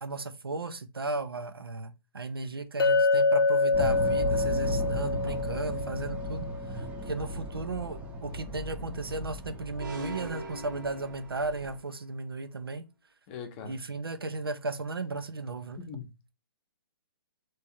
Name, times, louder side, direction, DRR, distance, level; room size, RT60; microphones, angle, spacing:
voice 1, 0.0-6.5 6.7-12.8 13.6-15.8, right 3 dB, 70° right, 0.6 m, -35 dB
Chink clink, 2.8-7.0, left 3 dB, 65° left, 0.4 m, -26 dB
sound 1, 3.7-11.8, equal, 10° right, 0.7 m, -36 dB
sound 2, 9.8-11.8, right 1 dB, 55° right, 1.2 m, -40 dB
voice 2, 13.3-13.8 15.8-16.3, left 6 dB, 25° left, 0.8 m, -42 dB
3.5 x 3.1 x 4.3 m
figure-of-eight pair, 125°, 13 cm